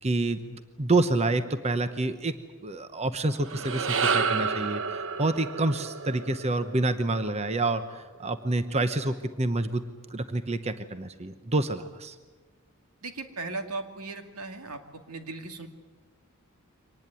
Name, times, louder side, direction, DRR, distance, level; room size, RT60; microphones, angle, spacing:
voice 1, 0.0-2.3 2.6-4.8 5.2-9.8 10.1-12.2, right 2 dB, 30° right, 10 dB, 0.9 m, -28 dB
sound 1, 3.3-7.8, right 5 dB, 60° right, 1.1 m, -30 dB
voice 2, 13.0-15.7, right 3 dB, 85° right, 6 dB, 2.4 m, -37 dB
24.5 x 19.5 x 9.1 m, 1.3 s
head